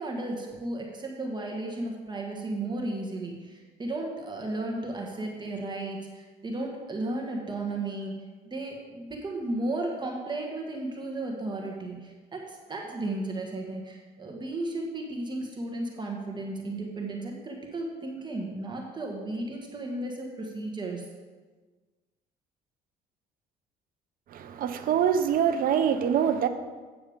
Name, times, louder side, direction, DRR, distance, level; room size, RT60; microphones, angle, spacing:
voice 1, 0.0-8.2 8.4-21.0, right 2 dB, 25° right, 0 dB, 1.5 m, -34 dB
voice 2, 24.3-26.5, right 8 dB, 60° right, 9 dB, 0.8 m, -24 dB
8.7 x 7.1 x 5.1 m, 1.3 s
cardioid pair, 110°, 17 cm